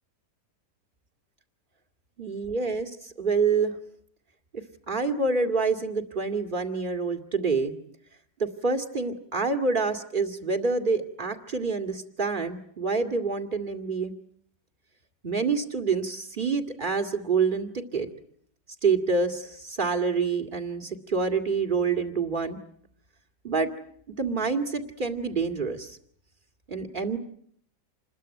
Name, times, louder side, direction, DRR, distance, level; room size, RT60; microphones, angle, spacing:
voice 1, 2.2-3.8 4.5-7.7 8.4-14.1 15.2-18.1 18.8-22.6 23.4-23.7 24.1-26.0 26.7-27.2, right 4 dB, 25° right, 6 dB, 2.4 m, -27 dB
28.0 x 21.5 x 9.1 m, 0.66 s
omnidirectional pair, 1.9 m